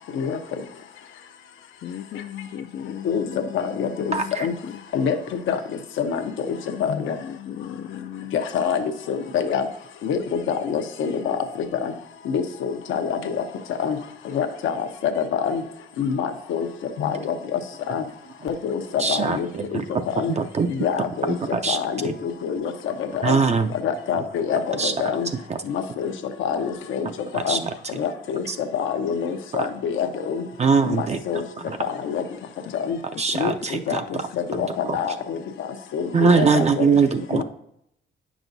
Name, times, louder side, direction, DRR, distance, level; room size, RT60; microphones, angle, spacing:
voice 1, 1.8-4.4 4.6-4.8 6.6-8.4 32.6-32.7 33.1-33.2 34.1-34.2 35.0-35.1 36.1-36.6, left 9 dB, 55° left, 15 dB, 0.4 m, -36 dB
voice 2, 3.5-4.5 4.9-5.6 6.0-7.2 8.3-9.7 10.0-11.4 11.7-11.9 12.2-13.4 13.7-14.0 14.3-15.6 16.0-16.7 17.0-17.6 17.9-18.0 18.4-19.8 20.1-20.3 20.7-21.4 21.7-23.4 23.8-25.3 25.6-26.1 26.4-27.1 27.3-27.6 27.9-30.4 30.8-31.4 31.8-32.2 32.7-33.0 33.3-34.0 34.4-36.9 37.3-37.4, left 7 dB, 80° left, 6 dB, 0.8 m, -26 dB
voice 3, 4.1-4.5 19.0-20.0 20.4-20.7 21.2-21.8 22.0-22.1 23.2-23.7 24.1-24.2 24.8-24.9 25.5-25.6 27.3-27.7 28.5-28.6 30.6-31.2 31.6-31.8 33.2-34.3 34.5-35.0 36.1-37.4, right 5 dB, 35° right, 7 dB, 0.5 m, -22 dB
8.9 x 6.1 x 2.6 m, 0.75 s
cardioid pair, 90°, 20 cm